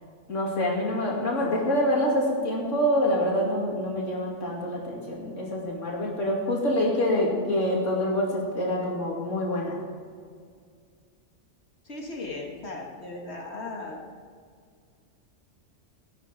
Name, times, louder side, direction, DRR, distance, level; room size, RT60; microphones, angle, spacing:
voice 1, 0.3-9.8, left 1 dB, 90° left, -3 dB, 2.8 m, -26 dB
voice 2, 11.9-14.0, left 2 dB, 65° left, 0 dB, 2.0 m, -37 dB
16.5 x 11.0 x 5.1 m, 2.1 s
omnidirectional pair, 1.2 m